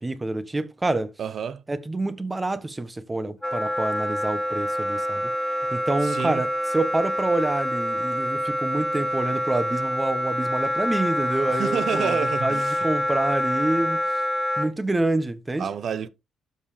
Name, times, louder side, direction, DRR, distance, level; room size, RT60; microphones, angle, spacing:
voice 1, 0.0-1.1 1.7-5.3 5.7-12.2 12.4-14.0 14.6-15.7, right 2 dB, 15° right, 1.2 m, -27 dB
voice 2, 1.2-1.6 6.0-6.4 11.5-12.8 15.6-16.1, right 7 dB, 60° right, 0.9 m, -29 dB
Wind instrument woodwind instrument, 3.4-14.7, equal, 5° left, 2.3 m, -26 dB
12.0 x 5.5 x 3.4 m
cardioid pair, 90°, 0 cm